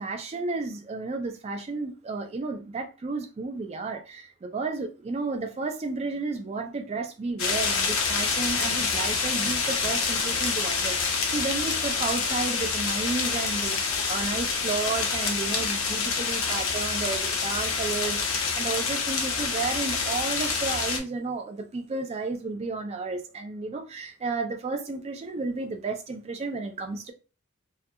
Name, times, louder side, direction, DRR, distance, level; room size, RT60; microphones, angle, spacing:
voice 1, 0.0-27.1, right 3 dB, 30° right, 0.3 m, -32 dB
sound 1, 7.4-21.0, left 5 dB, 80° left, 0.6 m, -27 dB
2.3 x 2.2 x 2.6 m
head